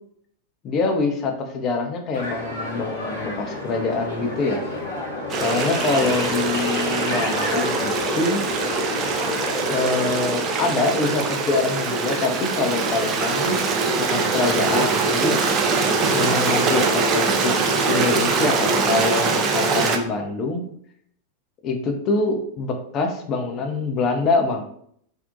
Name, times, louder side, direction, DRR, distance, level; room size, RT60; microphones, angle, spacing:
voice 1, 0.6-4.6 5.4-8.4 9.7-13.6 14.0-15.4 16.1-17.5 17.9-20.6 21.6-24.6, left 3 dB, 35° left, 4 dB, 0.4 m, -25 dB
sound 1, 2.1-10.3, left 2 dB, 65° left, 0.8 m, -30 dB
Stream, 5.3-20.0, right 4 dB, 30° right, 0.3 m, -22 dB
2.5 x 2.1 x 2.6 m, 0.67 s
figure-of-eight pair, 90°, 0 cm